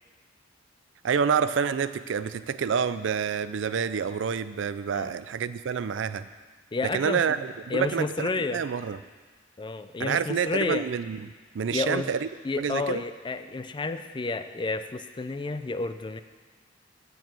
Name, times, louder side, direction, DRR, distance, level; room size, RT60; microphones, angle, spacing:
voice 1, 1.0-6.3 6.8-9.0 10.0-11.3 11.5-12.3 12.6-13.0, right 6 dB, 70° right, 14 dB, 0.4 m, -28 dB
voice 2, 6.7-7.2 7.7-8.6 9.6-10.9 11.7-12.1 12.4-16.2, left 3 dB, 25° left, 10 dB, 0.4 m, -30 dB
8.0 x 7.0 x 7.6 m, 1.4 s
head